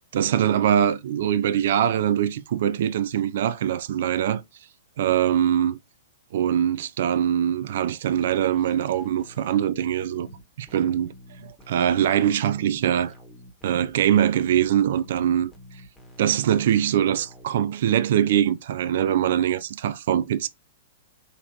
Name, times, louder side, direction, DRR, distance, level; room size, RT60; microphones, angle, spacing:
voice 1, 0.1-4.4 5.0-5.8 6.3-10.3 10.6-11.1 11.4-13.1 13.6-15.5 16.2-20.5, right 10 dB, 55° right, 0.5 m, -23 dB
sound 1, 8.2-17.5, left 1 dB, 5° left, 1.9 m, -48 dB
4.3 x 4.1 x 2.9 m
figure-of-eight pair, 110°, 0 cm